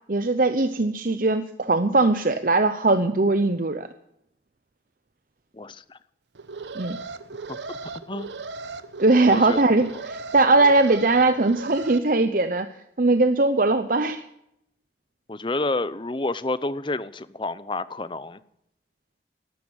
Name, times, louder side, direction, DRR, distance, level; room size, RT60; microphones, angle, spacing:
voice 1, 0.1-3.9 6.7-7.0 9.0-12.7 13.0-14.2, right 2 dB, 50° right, 10 dB, 0.8 m, -20 dB
voice 2, 5.5-6.0 7.7-7.8 8.1-8.3 9.3-9.7 15.3-18.4, left 2 dB, 25° left, 16 dB, 0.7 m, -29 dB
Alarm, 6.4-12.0, right 4 dB, 90° right, 1.0 m, -37 dB
13.0 x 12.5 x 8.8 m, 0.77 s
head